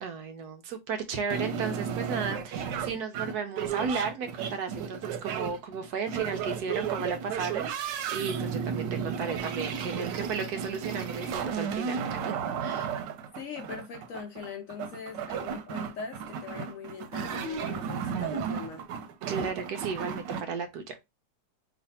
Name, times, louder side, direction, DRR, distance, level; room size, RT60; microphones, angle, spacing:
voice 1, 0.0-12.9 19.3-21.0, right 5 dB, 70° right, 1.1 m, -34 dB
sound 1, 1.3-20.4, right 7 dB, 90° right, 1.3 m, -34 dB
voice 2, 13.4-18.8, left 6 dB, 65° left, 0.9 m, -41 dB
3.2 x 2.5 x 4.1 m
omnidirectional pair, 1.8 m